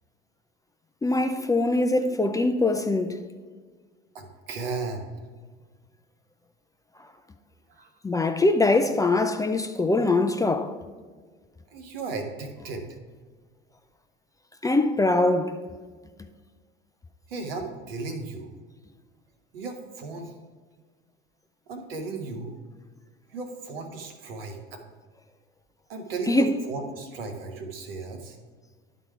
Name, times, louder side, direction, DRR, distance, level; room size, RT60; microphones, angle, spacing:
voice 1, 1.0-3.2 8.0-10.7 14.6-15.6 26.3-26.5, left 2 dB, 10° left, 0.5 m, -22 dB
voice 2, 4.1-5.1 7.8-7.9 11.7-12.8 17.3-18.5 19.5-20.4 21.7-22.5 23.3-24.8 25.9-28.4, right 3 dB, 75° right, 1.2 m, -35 dB
11.0 x 4.0 x 4.6 m
hypercardioid pair, 70°, 29 cm